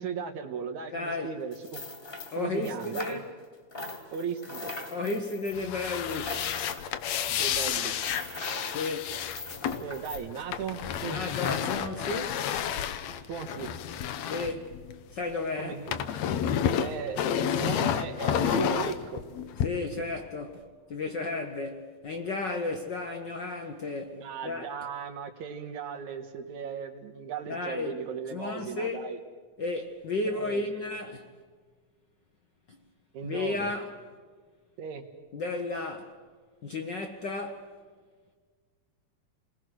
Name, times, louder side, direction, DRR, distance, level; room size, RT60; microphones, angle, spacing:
voice 1, 0.0-1.8 2.3-3.2 4.1-4.7 7.3-8.2 9.8-11.2 13.3-13.7 15.6-16.0 16.7-19.2 24.1-29.2 30.3-30.7 33.1-33.7 34.8-35.1, right 7 dB, 80° right, 2.8 m, -37 dB
voice 2, 0.9-1.3 2.3-3.2 4.9-6.4 8.7-9.2 11.1-12.5 14.2-14.7 15.1-15.7 19.6-24.7 27.5-27.9 28.3-29.0 29.6-31.3 33.2-33.9 35.3-36.1 36.6-37.7, left 3 dB, 55° left, 1.3 m, -33 dB
sound 1, 1.5-3.5 3.7-10.2, left 3 dB, 20° left, 1.8 m, -41 dB
sound 2, 5.5-15.3 15.6-19.7, left 9 dB, 70° left, 2.0 m, -30 dB
28.5 x 20.5 x 6.3 m
omnidirectional pair, 3.4 m